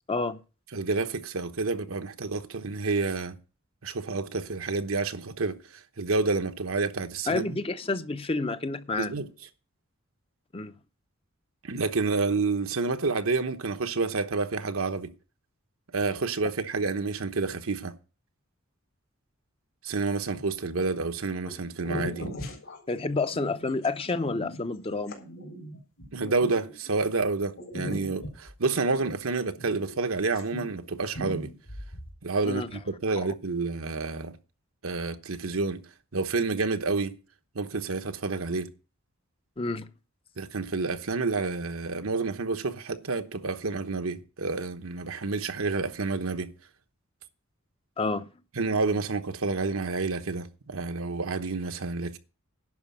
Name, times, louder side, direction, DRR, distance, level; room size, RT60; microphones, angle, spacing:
voice 1, 0.1-0.4 7.3-9.1 10.5-10.8 22.9-25.2 32.4-32.7 33.2-33.3 39.6-39.9 48.0-48.3, left 3 dB, 25° left, 0.6 m, -29 dB
voice 2, 0.7-3.4 3.8-5.6 6.0-7.6 9.0-9.3 11.6-15.1 15.9-17.9 19.8-22.3 26.1-31.5 32.2-34.3 34.8-37.2 37.5-38.7 40.4-46.5 48.6-52.2, right 3 dB, 85° right, 1.0 m, -29 dB
sound 1, 20.3-20.8 21.5-21.6 21.8-27.1 27.6-30.0 30.3-30.8 31.1-32.1, equal, 75° left, 4.1 m, -39 dB
11.0 x 5.1 x 8.5 m
head